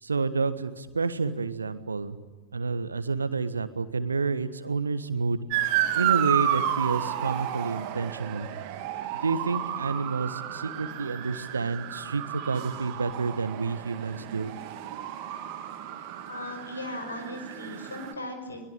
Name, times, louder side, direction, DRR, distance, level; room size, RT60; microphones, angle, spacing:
voice 1, 0.0-2.2 2.5-5.5 5.9-8.5 9.2-14.5, right 4 dB, 75° right, 13 dB, 1.5 m, -29 dB
Motor vehicle (road) / Siren, 5.5-18.1, right 11 dB, 45° right, 2.6 m, -32 dB
voice 2, 16.3-18.6, left 1 dB, 75° left, 6 dB, 5.6 m, -37 dB
23.0 x 21.5 x 9.1 m, 1.3 s
figure-of-eight pair, 90°, 0 cm